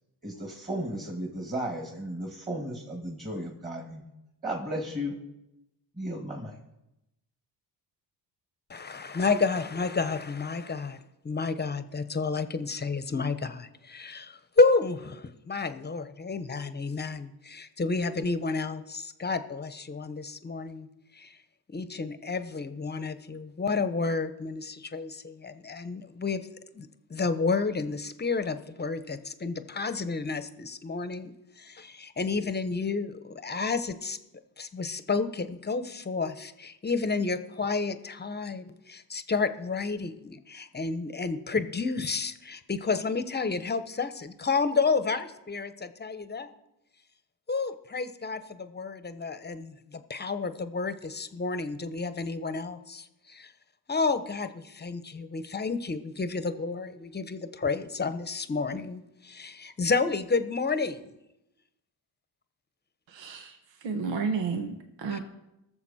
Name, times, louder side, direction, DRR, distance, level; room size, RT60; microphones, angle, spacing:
voice 1, 0.2-4.0 4.4-5.2 6.0-6.6, right 1 dB, 15° right, 1 dB, 2.2 m, -34 dB
voice 2, 8.7-11.0 11.2-20.9 21.1-21.4 21.7-26.5 26.7-34.2 34.6-46.5 47.5-53.5 53.9-61.0 65.1-65.2, left 4 dB, 20° left, 11 dB, 1.0 m, -30 dB
voice 3, 63.1-63.6 63.8-65.2, right 5 dB, 80° right, 6 dB, 1.3 m, -31 dB
19.0 x 7.1 x 4.3 m, 0.90 s
cardioid pair, 80°, 44 cm